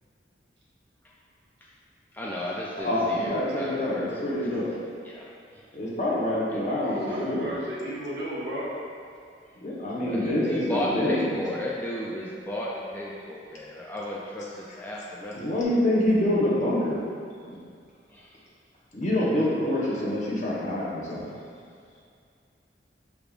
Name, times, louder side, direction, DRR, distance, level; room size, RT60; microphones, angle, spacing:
voice 1, 2.1-4.6 5.0-5.3 6.5-6.7 10.0-15.6 18.1-18.3, equal, 10° left, -5 dB, 0.3 m, -34 dB
voice 2, 2.8-4.7 5.7-7.5 9.6-11.4 15.4-17.0 17.4-17.5 18.9-21.3, left 1 dB, 45° left, -6 dB, 0.9 m, -26 dB
voice 3, 6.7-8.7 20.9-21.0, equal, 70° right, -8 dB, 1.2 m, -33 dB
6.1 x 3.4 x 2.4 m, 2.3 s
head